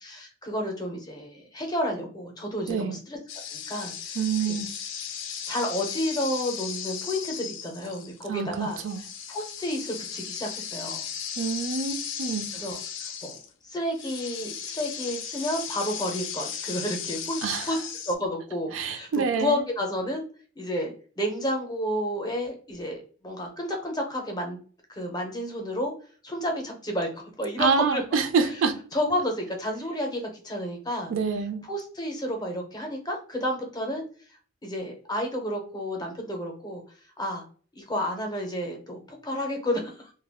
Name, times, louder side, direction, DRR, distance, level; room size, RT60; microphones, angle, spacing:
voice 1, 0.0-3.2 3.5-4.2 4.5-4.6 5.5-8.8 9.3-11.1 12.5-13.4 13.6-17.8 18.1-20.2 20.6-24.6 24.9-25.9 26.2-28.0 28.9-31.1 31.6-34.0 34.6-36.8 37.2-37.4 37.7-40.1, left 1 dB, 20° left, 0.5 m, -31 dB
voice 2, 2.7-3.0 4.2-4.7 8.3-9.0 11.4-12.5 17.4-17.8 18.7-19.7 27.6-28.8 31.1-31.7, right 5 dB, 75° right, 0.4 m, -27 dB
sound 1, 3.3-8.3 8.6-13.5 13.9-18.1, left 8 dB, 70° left, 0.4 m, -36 dB
2.3 x 2.1 x 3.4 m
head